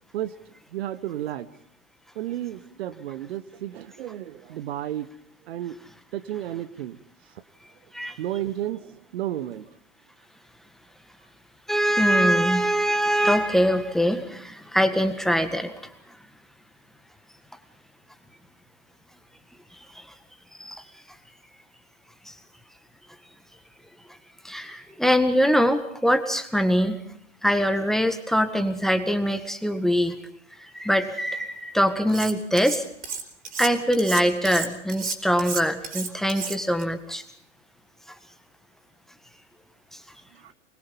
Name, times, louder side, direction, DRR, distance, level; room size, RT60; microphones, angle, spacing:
voice 1, 0.7-1.5 2.1-5.1 5.4-5.8 6.1-7.0 8.2-9.7 40.3-40.5, right 12 dB, 55° right, 13 dB, 1.2 m, -32 dB
voice 2, 11.7-15.7 19.9-20.0 20.6-20.8 22.3-22.4 24.4-27.0 27.4-30.1 30.6-32.8 33.6-37.2, equal, ahead, 9 dB, 1.7 m, -23 dB
Cutlery silverware, 32.1-32.8 33.0-36.8, right 5 dB, 25° right, 4.4 m, -32 dB
24.0 x 22.0 x 5.5 m, 0.70 s
figure-of-eight pair, 100°, 36 cm